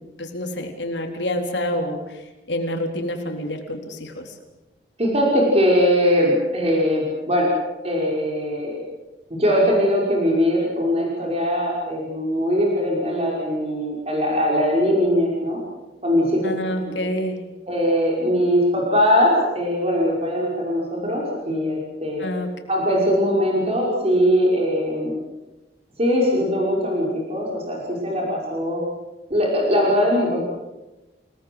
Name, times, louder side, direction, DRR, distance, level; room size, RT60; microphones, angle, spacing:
voice 1, 0.2-2.2 2.5-4.4 16.4-17.4 22.2-22.5, left 1 dB, 75° left, 4 dB, 3.8 m, -27 dB
voice 2, 5.0-7.5 7.8-8.8 9.3-15.6 16.0-16.4 17.7-22.3 22.7-25.1 26.0-28.8 29.3-30.5, equal, 35° right, -2 dB, 5.6 m, -21 dB
29.0 x 19.0 x 8.0 m, 1.1 s
head